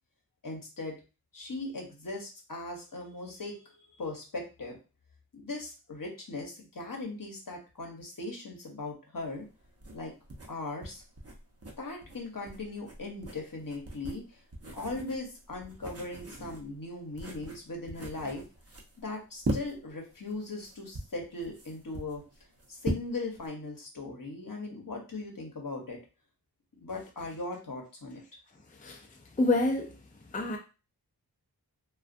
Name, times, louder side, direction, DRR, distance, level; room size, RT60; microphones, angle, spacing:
voice 1, 0.4-1.0 1.3-4.8 5.3-9.5 9.9-10.1 10.5-11.0 11.8-14.4 14.7-18.4 19.0-22.2 22.7-26.0 26.8-28.2, left 2 dB, 55° left, 1 dB, 0.9 m, -39 dB
sound 1, 9.2-23.5, right 2 dB, 35° right, 0.7 m, -40 dB
voice 2, 29.4-29.9 30.3-30.6, left 2 dB, 20° left, 2 dB, 0.4 m, -26 dB
2.4 x 2.3 x 2.5 m, 0.31 s
wide cardioid pair, 45°, 40 cm